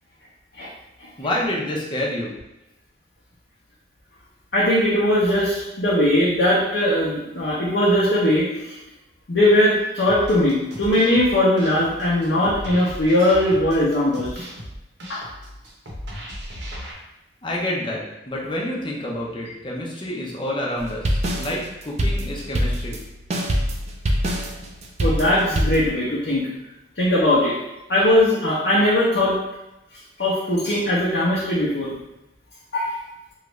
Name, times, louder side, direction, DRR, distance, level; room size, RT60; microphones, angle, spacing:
voice 1, 1.2-2.3 17.4-23.0, left 1 dB, 30° left, -3 dB, 0.7 m, -28 dB
voice 2, 4.5-8.8 9.3-14.4 15.1-15.3 25.0-26.4 27.0-27.5 27.9-29.4 30.2-32.0 32.7-32.9, left 1 dB, 70° left, -8 dB, 0.7 m, -20 dB
sound 1, 10.1-16.9, equal, 80° right, 0.8 m, -36 dB
sound 2, 20.8-25.9, equal, 40° right, 0.4 m, -23 dB
3.1 x 2.4 x 3.1 m, 0.93 s
head